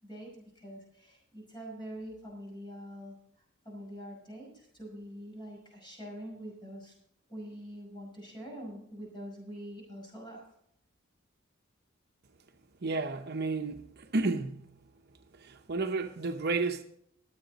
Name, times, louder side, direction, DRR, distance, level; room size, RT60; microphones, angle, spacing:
voice 1, 0.0-3.2 3.6-6.9 7.3-10.4, equal, 20° left, 5.7 m, -44 dB
voice 2, 12.8-14.6 15.4-16.8, right 3 dB, 50° right, 0.8 m, -32 dB
22.0 x 7.9 x 4.1 m
head